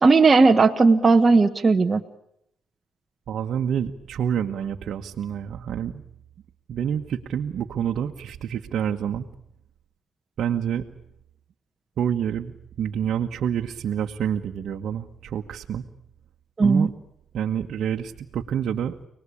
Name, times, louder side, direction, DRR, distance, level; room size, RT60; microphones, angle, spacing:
voice 1, 0.0-2.0 16.6-16.9, right 4 dB, 30° right, 4 dB, 1.3 m, -16 dB
voice 2, 3.3-6.0 6.7-9.3 10.4-10.8 12.0-15.8 16.6-16.9 17.3-18.9, right 8 dB, 65° right, 2 dB, 1.4 m, -27 dB
29.5 x 20.0 x 8.5 m, 0.77 s
cardioid pair, 90°, 0 cm